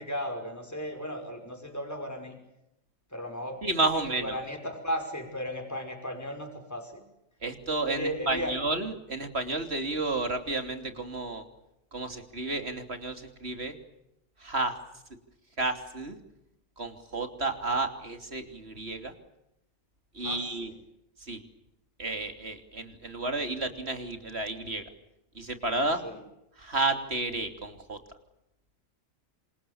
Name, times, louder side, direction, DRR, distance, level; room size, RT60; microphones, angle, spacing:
voice 1, 0.0-2.4 3.1-3.6 4.2-7.0 7.9-8.6 20.2-20.5 26.0-26.2, equal, 10° left, 3 dB, 5.6 m, -35 dB
voice 2, 3.6-4.4 7.4-11.4 11.9-13.8 14.4-14.7 15.6-16.2 16.8-19.1 20.1-20.7 21.2-21.4 22.0-24.8 25.3-26.0 26.6-28.0, right 2 dB, 55° right, 7 dB, 3.4 m, -31 dB
27.5 x 27.5 x 7.1 m, 0.86 s
omnidirectional pair, 1.3 m